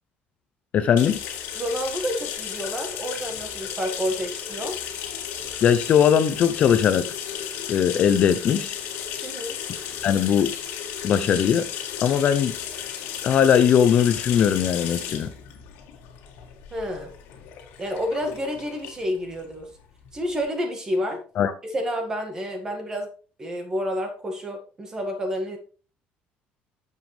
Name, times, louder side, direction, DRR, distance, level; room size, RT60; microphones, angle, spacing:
voice 1, 0.7-1.2 5.6-7.1 7.7-8.8 10.0-10.5 11.0-11.7 12.0-12.5 13.2-15.3 21.4-21.5, left 8 dB, 35° left, 0.6 m, -19 dB
sound 1, 1.0-20.4, left 9 dB, 80° left, 1.9 m, -34 dB
voice 2, 1.5-4.8 9.2-9.6 16.7-17.1 17.8-19.7 20.1-21.2 21.6-23.1 23.4-25.6, equal, 15° right, 1.8 m, -29 dB
9.3 x 7.5 x 3.3 m
cardioid pair, 180°, 4 cm